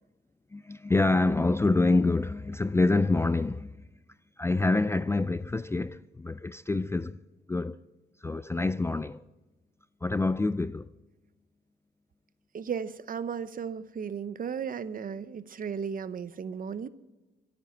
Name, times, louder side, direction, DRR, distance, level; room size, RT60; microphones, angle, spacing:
voice 1, 0.5-3.9 4.4-7.2 7.5-7.8 8.2-9.2 10.0-10.9, left 3 dB, 15° left, 0.4 m, -26 dB
voice 2, 12.5-16.9, right 7 dB, 45° right, 0.8 m, -35 dB
25.5 x 9.7 x 4.4 m
cardioid pair, 90°, 20 cm